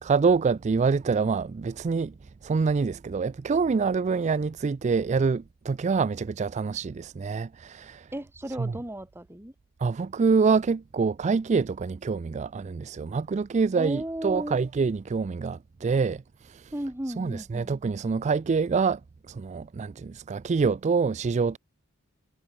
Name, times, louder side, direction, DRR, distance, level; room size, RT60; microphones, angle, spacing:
voice 1, 0.0-8.1 8.6-8.7 9.8-16.7 17.2-19.0 19.3-21.6, right 5 dB, 30° right, 0.3 m, -26 dB
voice 2, 8.1-9.5 13.8-14.6 16.7-17.7, right 1 dB, 10° right, 1.5 m, -35 dB
head